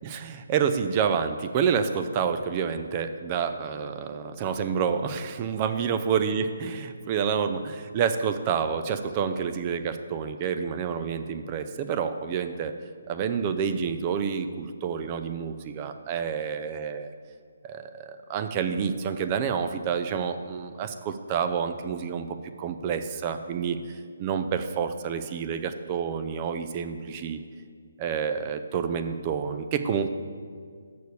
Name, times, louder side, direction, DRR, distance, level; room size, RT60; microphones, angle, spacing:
voice 1, 0.0-12.7 13.1-17.1 17.6-22.3 22.6-27.4 28.0-30.1, right 7 dB, 25° right, 8 dB, 0.5 m, -28 dB
6.8 x 6.4 x 6.7 m, 2.1 s
figure-of-eight pair, 150°, 0 cm